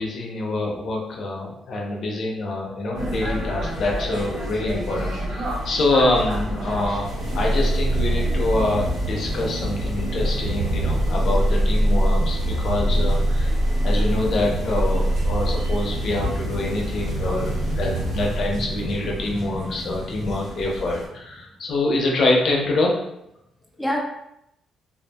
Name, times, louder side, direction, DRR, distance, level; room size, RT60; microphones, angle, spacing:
voice 1, 0.0-13.5 13.8-23.0, left 2 dB, 60° left, -1 dB, 0.6 m, -25 dB
sound 1, 2.9-21.1, equal, 85° right, 1.2 m, -31 dB
sound 2, 7.2-19.1, right 1 dB, 65° right, 1.2 m, -24 dB
voice 2, 15.6-16.1 16.9-20.4 23.8-24.0, equal, ahead, -1 dB, 0.5 m, -33 dB
2.6 x 2.6 x 2.2 m, 0.80 s
cardioid pair, 90°, 0 cm